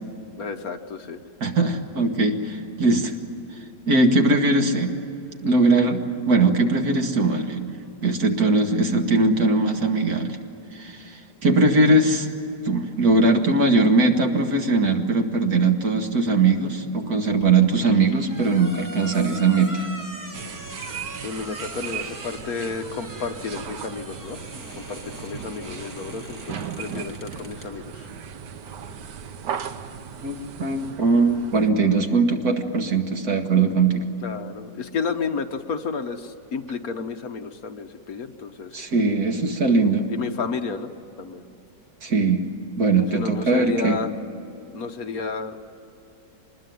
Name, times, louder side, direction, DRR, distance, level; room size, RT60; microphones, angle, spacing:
voice 1, 0.4-1.2 21.2-24.4 24.8-28.1 34.2-38.8 40.1-40.9 41.2-41.4 43.1-44.1 44.7-45.6, left 5 dB, 60° left, 7 dB, 1.5 m, -31 dB
voice 2, 1.4-3.1 3.9-4.9 5.4-7.7 8.0-10.4 10.7-12.3 12.6-19.9 30.2-34.0 38.7-40.1 42.0-42.5 42.8-44.0, right 3 dB, 60° right, 4 dB, 2.3 m, -20 dB
sound 1, 17.4-27.7, equal, 10° right, 2.9 m, -41 dB
sound 2, 20.3-31.7, right 8 dB, 80° right, 1.6 m, -37 dB
25.0 x 21.0 x 9.4 m, 2.8 s
omnidirectional pair, 1.8 m